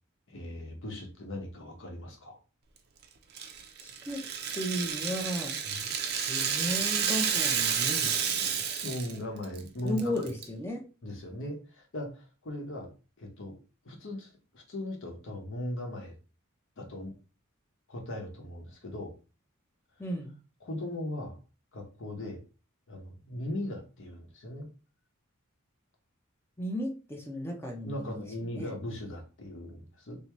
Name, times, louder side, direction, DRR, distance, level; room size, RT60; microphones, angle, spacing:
voice 1, 0.3-2.4 5.6-5.9 8.8-10.1 11.0-12.9 13.2-13.6 13.8-16.1 16.8-17.1 17.9-19.1 20.6-21.4 21.7-22.4 22.9-24.7 27.8-30.2, left 1 dB, 60° left, 2 dB, 1.0 m, -38 dB
Rattle (instrument), 3.4-9.2 9.4-9.6 10.0-10.4, right 7 dB, 50° right, 0.5 m, -30 dB
voice 2, 3.8-4.2 4.5-5.5 6.3-8.6 9.8-10.8 20.0-20.3 26.6-28.2 28.5-28.7, equal, 10° left, 1 dB, 0.6 m, -35 dB
3.4 x 2.7 x 3.0 m, 0.33 s
head